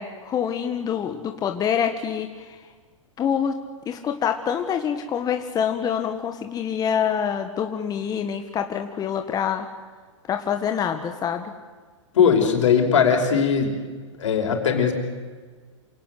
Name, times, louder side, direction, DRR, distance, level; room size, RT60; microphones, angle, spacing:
voice 1, 0.0-2.6 3.2-3.5 3.8-9.7 10.3-11.5, left 8 dB, 25° left, 6 dB, 1.7 m, -26 dB
voice 2, 12.1-13.8 14.2-14.9, left 7 dB, 70° left, 4 dB, 5.4 m, -19 dB
28.0 x 18.0 x 8.2 m, 1.5 s
hypercardioid pair, 120°, 16 cm